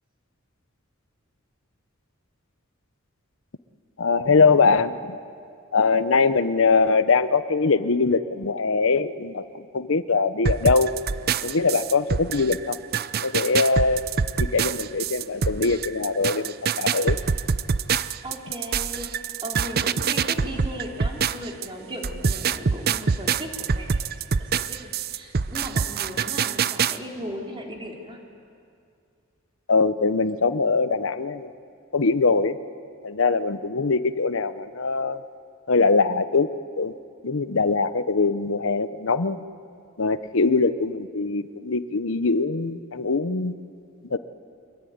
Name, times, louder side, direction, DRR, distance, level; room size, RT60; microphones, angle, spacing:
voice 1, 4.0-5.2 5.7-10.9 11.4-12.8 13.2-14.0 14.4-17.2 29.7-31.5 31.9-32.6 33.0-35.2 35.7-36.5 36.8-36.9 37.2-39.4 40.0-43.5 44.1-44.2, left 4 dB, 70° left, 12 dB, 0.9 m, -22 dB
sound 1, 10.4-21.7 22.0-27.0, right 6 dB, 50° right, 0.6 m, -25 dB
voice 2, 18.2-19.1 19.4-28.2 40.1-40.3, equal, 25° right, 0 dB, 3.7 m, -37 dB
24.5 x 23.0 x 9.5 m, 2.4 s
head